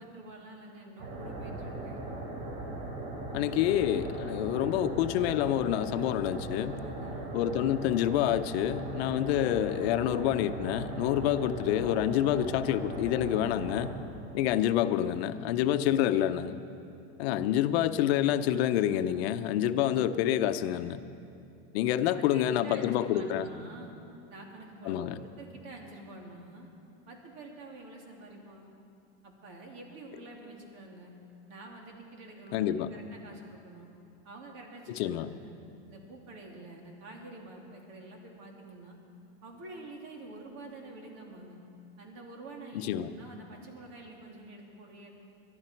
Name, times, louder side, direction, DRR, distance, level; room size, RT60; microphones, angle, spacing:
voice 1, 0.0-2.0 6.8-7.4 22.1-23.9 24.3-26.7 27.1-28.7 29.2-31.1 31.5-33.9 34.2-35.6 35.9-39.0 39.4-41.6 42.0-45.1, right 2 dB, 55° right, 0 dB, 3.1 m, -47 dB
sound 1, 1.0-13.9, right 2 dB, 70° right, 3.9 m, -39 dB
voice 2, 3.3-6.8 7.3-14.0 14.3-16.6 17.2-21.0 21.7-23.5 24.8-25.2 32.5-32.9 35.0-35.3 42.7-43.1, left 11 dB, 75° left, 11 dB, 0.8 m, -28 dB
22.0 x 12.0 x 4.5 m, 2.7 s
supercardioid pair, 130°, 32 cm